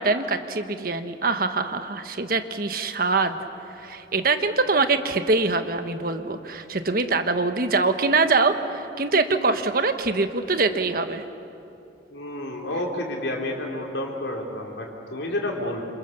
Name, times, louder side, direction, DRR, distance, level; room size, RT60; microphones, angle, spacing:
voice 1, 0.0-3.4 3.8-11.2, right 3 dB, 50° right, 8 dB, 1.4 m, -23 dB
voice 2, 12.1-15.8, left 1 dB, 75° left, 0 dB, 4.5 m, -30 dB
29.5 x 27.5 x 7.0 m, 2.7 s
head